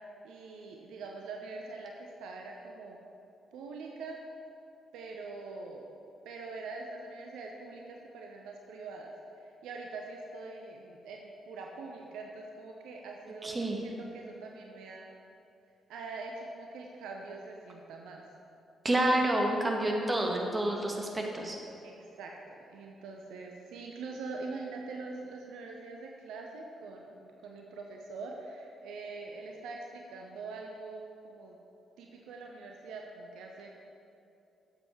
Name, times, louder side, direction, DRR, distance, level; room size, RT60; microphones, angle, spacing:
voice 1, 0.2-3.0 3.5-4.2 4.9-5.9 6.2-15.2 15.9-18.2 21.8-31.6 32.0-33.7, right 3 dB, 70° right, 1 dB, 0.8 m, -44 dB
voice 2, 13.4-13.8 18.8-21.6, right 1 dB, 25° right, 1 dB, 2.0 m, -29 dB
13.0 x 7.9 x 4.7 m, 2.8 s
hypercardioid pair, 40°, 0 cm